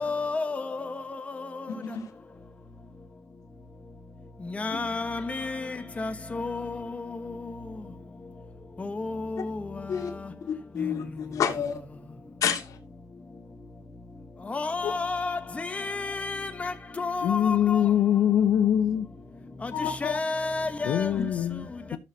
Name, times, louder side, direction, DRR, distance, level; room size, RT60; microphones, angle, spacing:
voice 1, 0.0-1.7 4.5-6.8 8.8-9.7 14.5-17.8 19.6-19.7 20.0-21.1, left 3 dB, 20° left, 1.3 m, -31 dB
voice 2, 10.5-11.8 12.4-12.6 19.7-20.1 21.1-21.2, left 8 dB, 60° left, 2.4 m, -28 dB
voice 3, 17.2-19.1 20.8-22.0, left 10 dB, 85° left, 0.9 m, -23 dB
15.0 x 6.5 x 2.9 m
cardioid pair, 145°, 6 cm